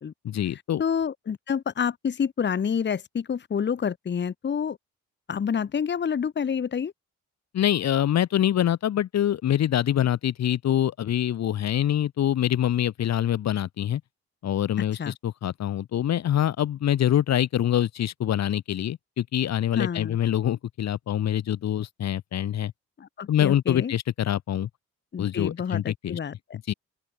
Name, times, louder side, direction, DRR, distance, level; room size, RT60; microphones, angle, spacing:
voice 1, 0.2-0.8 7.5-14.0 14.4-22.7 23.3-24.7 25.2-26.2 26.7-26.8, left 11 dB, 60° left, 1.4 m, -25 dB
voice 2, 0.8-4.8 5.3-6.9 15.0-15.1 19.8-20.2 23.0-23.9 25.1-26.3, left 7 dB, 35° left, 1.2 m, -28 dB
open air
cardioid pair, 90°, 30 cm